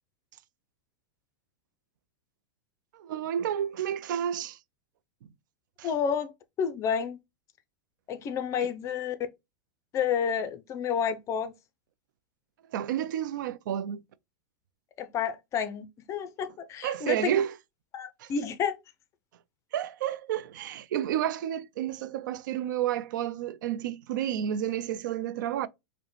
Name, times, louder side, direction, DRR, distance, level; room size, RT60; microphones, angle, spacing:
voice 1, 2.9-4.6 5.8-5.9 8.6-8.7 12.7-14.0 16.8-17.5 18.2-18.3 19.7-25.7, right 10 dB, 75° right, 0.4 m, -30 dB
voice 2, 5.8-6.3 6.6-7.2 8.1-9.2 9.9-11.5 15.0-17.4 17.9-18.8, left 7 dB, 30° left, 0.5 m, -30 dB
4.8 x 2.1 x 3.1 m
supercardioid pair, 130°, 10 cm